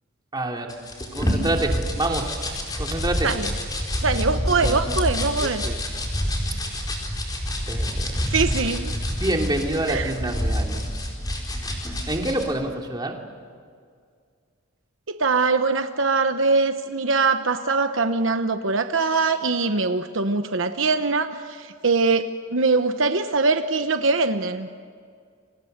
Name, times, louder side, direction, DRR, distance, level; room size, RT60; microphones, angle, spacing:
voice 1, 0.3-0.7 1.1-3.3 4.5-5.0 5.4-5.8 7.7-8.2 9.1-10.9 12.1-13.1, right 1 dB, 20° right, 1 dB, 2.8 m, -27 dB
sound 1, 0.7-12.4, equal, 20° left, 4.4 m, -27 dB
voice 2, 4.0-5.6 8.3-8.9 9.9-10.1 15.1-24.7, right 4 dB, 70° right, 8 dB, 1.0 m, -22 dB
30.0 x 25.5 x 6.7 m, 2.1 s
head